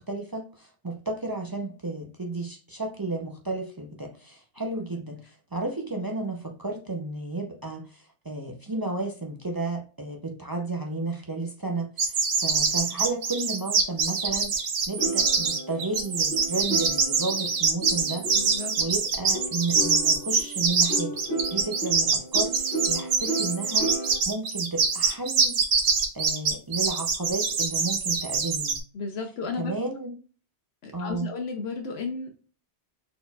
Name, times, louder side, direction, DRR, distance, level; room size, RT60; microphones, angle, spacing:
voice 1, 0.0-21.2 21.5-28.8 29.6-30.1 30.9-31.3, right 3 dB, 40° right, 0.3 m, -33 dB
sound 1, 12.0-28.8, right 5 dB, 90° right, 1.1 m, -24 dB
sound 2, 15.0-18.8 19.3-24.2, right 2 dB, 70° right, 1.7 m, -34 dB
voice 2, 18.3-18.8 28.9-29.7 30.8-32.3, left 4 dB, 70° left, 0.9 m, -33 dB
4.1 x 4.0 x 2.2 m
omnidirectional pair, 1.2 m